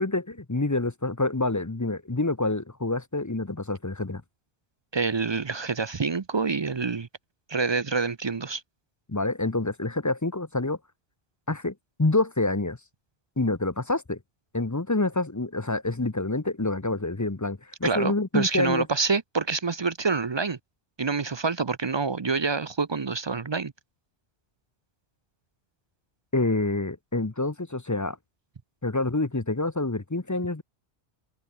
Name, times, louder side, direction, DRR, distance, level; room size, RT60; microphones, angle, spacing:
voice 1, 0.0-4.2 9.1-10.8 11.5-12.8 13.4-14.2 14.5-18.9 26.3-28.2 28.8-30.6, left 2 dB, 20° left, 0.8 m, -27 dB
voice 2, 4.9-7.1 7.5-8.6 17.8-20.6 21.0-23.7, right 4 dB, 35° right, 0.5 m, -27 dB
omnidirectional pair, 1.1 m